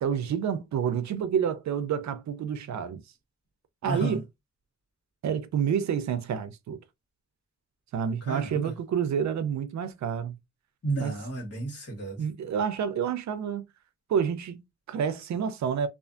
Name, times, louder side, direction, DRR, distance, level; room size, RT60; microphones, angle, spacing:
voice 1, 0.0-3.0 3.8-4.2 5.2-6.8 7.9-10.4 11.0-11.2 12.2-13.6 14.1-15.9, right 7 dB, 75° right, 0.5 m, -29 dB
voice 2, 3.8-4.2 8.3-8.7 10.8-12.2, right 3 dB, 55° left, 1.4 m, -32 dB
2.5 x 2.4 x 2.4 m
wide cardioid pair, 150°, 29 cm